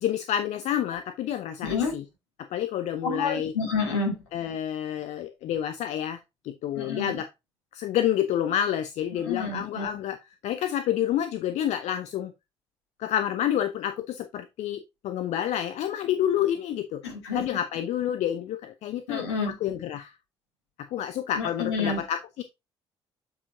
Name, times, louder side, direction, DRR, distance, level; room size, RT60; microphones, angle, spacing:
voice 1, 0.0-2.0 2.4-3.5 4.3-7.3 7.7-12.3 13.0-17.0 17.3-20.1 20.9-22.4, left 10 dB, 55° left, 0.6 m, -29 dB
voice 2, 1.6-1.9 3.0-4.2 6.8-7.2 9.2-9.9 17.0-17.4 19.1-19.5 21.4-22.0, left 4 dB, 75° left, 2.5 m, -29 dB
8.3 x 4.9 x 2.6 m
figure-of-eight pair, 45°, 14 cm